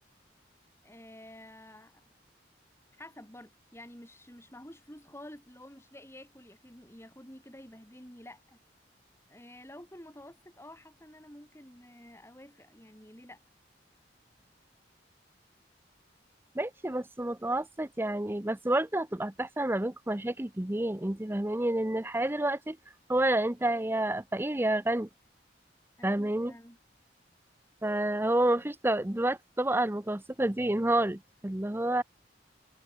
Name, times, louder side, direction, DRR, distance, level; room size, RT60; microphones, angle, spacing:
voice 1, 0.8-2.0 2.9-8.6 9.3-13.4 26.0-26.8, left 1 dB, 15° left, 7.8 m, -50 dB
voice 2, 16.5-22.8 23.1-25.1 26.0-26.5 27.8-32.0, right 1 dB, 10° right, 0.7 m, -29 dB
head